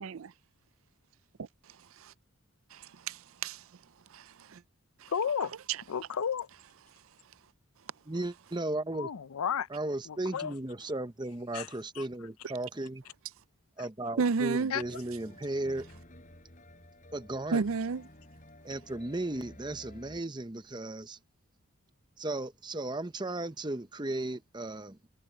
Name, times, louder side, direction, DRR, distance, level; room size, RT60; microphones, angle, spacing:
voice 1, 0.0-0.3 1.4-1.5 2.0-2.1 2.7-3.6 4.1-4.6 5.0-5.1 14.2-14.7 17.5-18.1, right 4 dB, 65° right, 0.5 m, -32 dB
voice 2, 5.1-5.5 5.9-6.5 8.9-9.7 10.1-10.5 10.8-10.9 11.5-12.1 13.8-13.9 14.7-15.0, left 7 dB, 75° left, 0.5 m, -33 dB
voice 3, 8.1-9.1 9.7-13.0 13.8-15.9 17.1-17.6 18.6-21.2 22.2-25.0, right 2 dB, 20° right, 0.8 m, -35 dB
sound 1, 14.8-20.2, left 1 dB, 35° left, 5.5 m, -54 dB
head